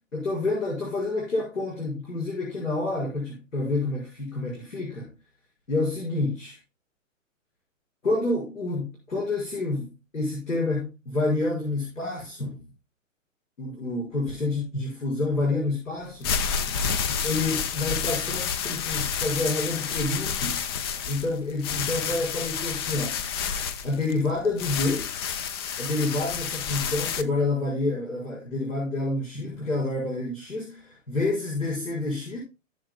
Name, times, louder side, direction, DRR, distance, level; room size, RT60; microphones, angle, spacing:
voice 1, 0.1-5.1 5.7-6.6 8.0-12.6 13.6-16.4 17.2-20.6 21.1-23.2 23.8-25.1 25.8-32.4, left 2 dB, 75° left, 5.5 m, -28 dB
sound 1, 16.0-27.2, left 7 dB, 20° left, 0.4 m, -29 dB
18.0 x 7.0 x 2.2 m
figure-of-eight pair, 120°, 39 cm